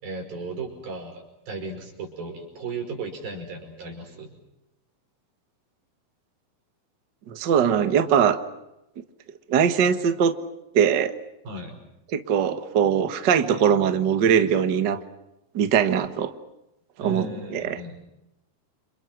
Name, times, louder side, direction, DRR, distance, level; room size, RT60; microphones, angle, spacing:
voice 1, 0.0-4.3 11.4-11.8 17.0-18.0, right 3 dB, 80° right, 2 dB, 7.1 m, -35 dB
voice 2, 7.3-8.4 9.5-10.3 10.7-11.1 12.1-15.0 15.5-16.3 17.0-17.8, right 8 dB, 60° right, 9 dB, 1.1 m, -21 dB
30.0 x 26.5 x 6.0 m, 0.90 s
omnidirectional pair, 4.1 m